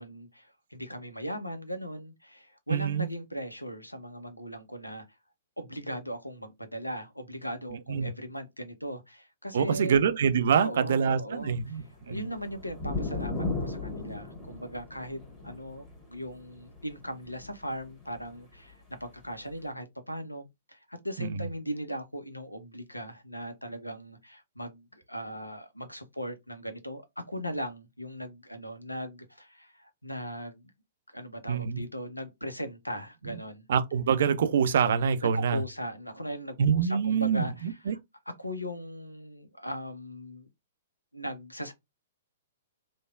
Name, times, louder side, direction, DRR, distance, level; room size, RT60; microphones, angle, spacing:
voice 1, 0.0-5.0 5.6-10.0 10.5-30.7 31.1-33.6 35.2-38.0 38.4-40.5 41.1-41.7, equal, 85° left, 0.6 m, -39 dB
voice 2, 2.7-3.1 7.9-8.1 9.5-12.2 21.2-21.5 31.5-31.8 33.7-35.6 36.6-38.0, right 7 dB, 55° right, 0.4 m, -25 dB
sound 1, 11.8-18.3 19.2-19.3, left 3 dB, 10° left, 1.4 m, -36 dB
3.3 x 2.2 x 2.2 m
figure-of-eight pair, 110°, 0 cm